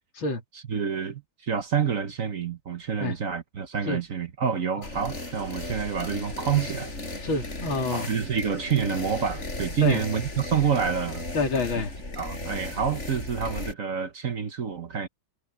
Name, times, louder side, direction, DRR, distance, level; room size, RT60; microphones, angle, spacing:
voice 1, 0.7-6.9 7.9-11.2 12.2-15.1, right 7 dB, 50° right, 1.4 m, -28 dB
sound 1, 4.8-13.7, left 2 dB, 35° left, 5.2 m, -36 dB
voice 2, 7.2-8.1 9.8-10.0 11.3-11.9, left 3 dB, 85° left, 3.5 m, -27 dB
omnidirectional pair, 2.1 m